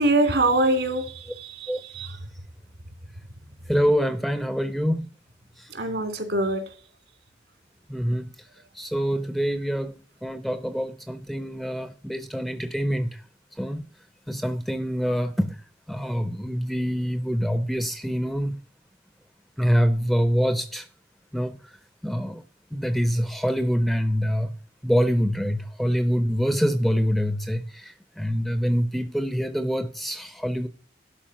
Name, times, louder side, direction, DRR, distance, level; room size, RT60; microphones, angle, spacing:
voice 1, 0.0-2.2 3.4-3.5 5.7-6.7, right 2 dB, 70° right, 2.8 m, -24 dB
voice 2, 3.7-5.1 5.6-5.7 7.9-8.3 8.8-13.2 13.6-13.8 14.3-15.6 15.9-18.6 19.6-20.9 21.3-21.6 22.0-22.4 22.7-24.5 24.8-30.7, equal, ahead, 0.5 m, -25 dB
11.5 x 4.9 x 6.0 m
head